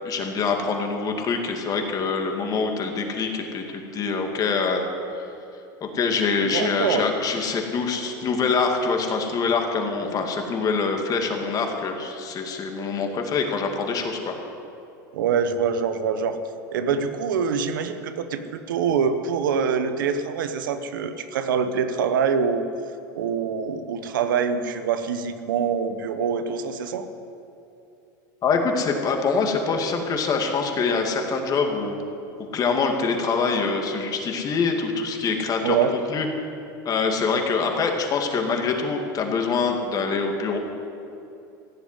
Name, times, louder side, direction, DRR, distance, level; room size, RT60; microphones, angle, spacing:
voice 1, 0.0-4.8 5.1-5.2 5.8-14.4 28.4-31.9 32.4-35.8 36.1-36.3 36.8-40.6, left 4 dB, 35° left, 3 dB, 2.2 m, -25 dB
voice 2, 6.4-7.0 15.1-16.4 16.7-18.4 18.7-22.7 23.1-27.1 35.6-36.0, right 6 dB, 90° right, 9 dB, 1.1 m, -24 dB
15.5 x 7.2 x 9.7 m, 2.8 s
supercardioid pair, 110°, 11 cm